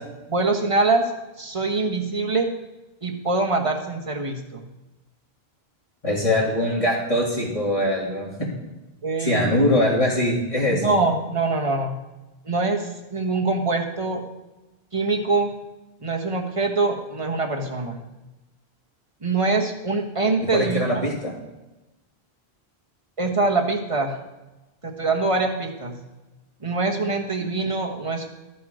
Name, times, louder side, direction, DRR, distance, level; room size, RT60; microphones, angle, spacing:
voice 1, 0.3-1.0 1.4-2.5 3.0-4.7 9.0-9.6 10.7-12.0 12.4-14.2 14.9-15.5 16.0-18.0 19.2-20.8 23.2-24.2 24.8-26.0 26.6-28.3, right 3 dB, 30° right, 2 dB, 1.4 m, -24 dB
voice 2, 6.0-8.5 9.2-10.9 20.5-21.3 27.4-27.5, left 1 dB, 30° left, -4 dB, 3.1 m, -22 dB
13.5 x 7.7 x 5.0 m, 1.1 s
omnidirectional pair, 1.1 m